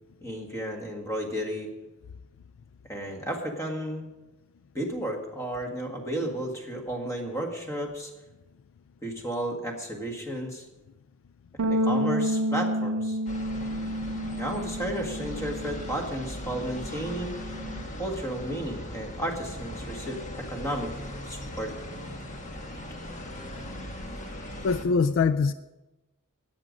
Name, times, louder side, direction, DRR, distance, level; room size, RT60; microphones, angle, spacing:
voice 1, 0.2-1.7 2.9-4.1 4.7-8.1 9.0-10.7 11.6-13.2 14.4-17.4 18.0-20.9 21.3-21.7, right 1 dB, 15° left, 2 dB, 1.7 m, -33 dB
Bass guitar, 11.6-17.8, equal, 85° right, 0.6 m, -30 dB
sound 1, 13.3-24.9, left 1 dB, 35° left, 1.3 m, -39 dB
voice 2, 24.6-25.5, left 5 dB, 60° left, 13 dB, 0.4 m, -23 dB
13.5 x 9.4 x 5.1 m, 1.1 s
head